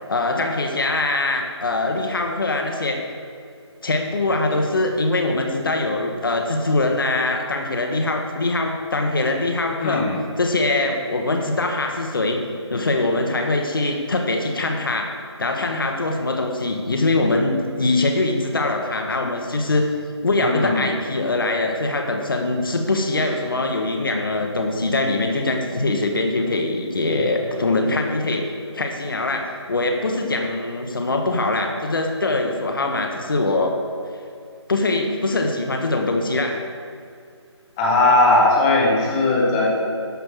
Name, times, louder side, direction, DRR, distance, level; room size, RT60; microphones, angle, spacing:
voice 1, 0.1-3.0 3.8-10.1 10.4-12.4 12.7-19.9 20.2-33.8 34.7-36.6, left 2 dB, 50° left, 4 dB, 1.2 m, -22 dB
voice 2, 9.8-10.2 20.4-20.9 37.8-39.7, left 2 dB, 10° left, -4 dB, 1.0 m, -18 dB
12.5 x 5.8 x 6.2 m, 2.3 s
figure-of-eight pair, 155°, 15 cm